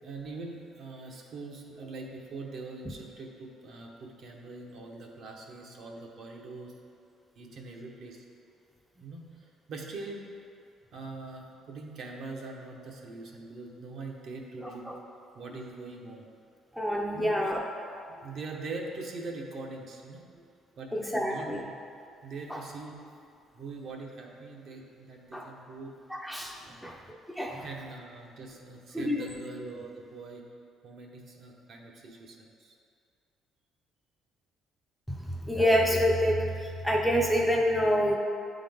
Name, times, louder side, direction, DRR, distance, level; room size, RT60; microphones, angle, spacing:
voice 1, 0.0-6.7 7.3-8.2 9.0-10.2 10.9-14.9 15.3-16.3 17.1-17.4 18.2-20.3 20.8-21.5 22.2-22.9 23.5-25.9 26.6-26.9 27.6-30.4 30.8-32.7, right 3 dB, 55° right, 0 dB, 0.8 m, -42 dB
voice 2, 14.6-14.9 16.7-17.6 20.9-21.6 22.5-22.6 25.3-25.5 26.1-27.0 27.3-27.7 28.9-29.2 35.1-38.2, equal, ahead, -1 dB, 0.5 m, -27 dB
9.4 x 3.7 x 3.5 m, 2.4 s
cardioid pair, 145°, 0 cm